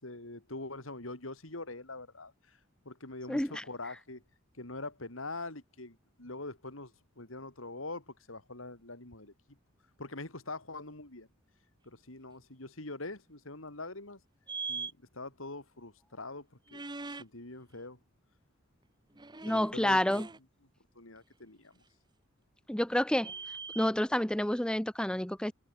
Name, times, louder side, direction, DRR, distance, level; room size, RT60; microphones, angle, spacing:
voice 1, 0.0-2.6 2.8-4.2 4.6-9.3 10.0-11.3 11.8-14.2 14.7-18.0 19.5-20.3 20.9-21.8, left 2 dB, 80° left, 4.3 m, -44 dB
voice 2, 3.3-3.6 19.4-20.3 22.7-23.3 23.8-25.5, left 1 dB, 5° left, 0.6 m, -29 dB
sound 1, 14.5-14.9 16.7-17.2 19.1-19.7 20.0-20.4 21.2-21.3 23.1-23.9, right 4 dB, 20° right, 1.5 m, -41 dB
head